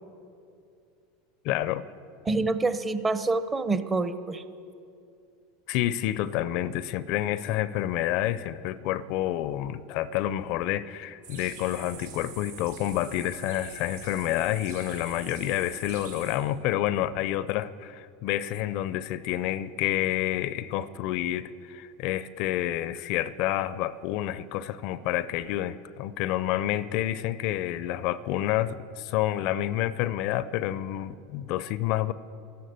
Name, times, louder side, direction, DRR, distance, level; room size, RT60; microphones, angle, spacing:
voice 1, 1.4-1.9 5.7-32.1, left 13 dB, 60° left, 17 dB, 0.5 m, -29 dB
voice 2, 2.3-4.4, right 3 dB, 20° right, 12 dB, 0.8 m, -26 dB
sound 1, 11.2-16.4, right 6 dB, 80° right, 3.9 m, -45 dB
12.5 x 11.5 x 7.9 m, 2.5 s
supercardioid pair, 110°, 0 cm